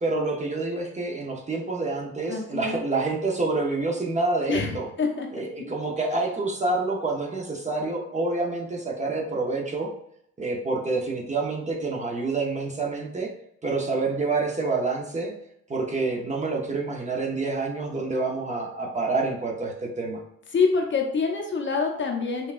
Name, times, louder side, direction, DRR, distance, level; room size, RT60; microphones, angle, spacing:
voice 1, 0.0-4.9 5.3-9.9 10.4-13.3 13.6-15.3 15.7-20.2, right 3 dB, 25° right, -1 dB, 0.7 m, -27 dB
voice 2, 2.3-2.8 4.5-5.7 20.5-22.5, left 4 dB, 40° left, 2 dB, 0.7 m, -26 dB
5.4 x 2.3 x 2.5 m, 0.74 s
cardioid pair, 90°, 30 cm